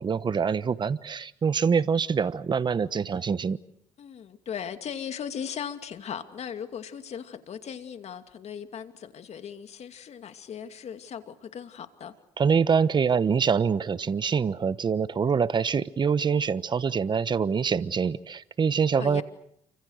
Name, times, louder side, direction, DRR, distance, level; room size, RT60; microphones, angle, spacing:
voice 1, 0.0-3.6 12.4-19.2, right 6 dB, 35° right, 15 dB, 1.1 m, -25 dB
voice 2, 4.0-12.1 18.9-19.2, left 8 dB, 50° left, 8 dB, 2.5 m, -38 dB
29.0 x 26.0 x 6.6 m, 0.70 s
cardioid pair, 90°, 14 cm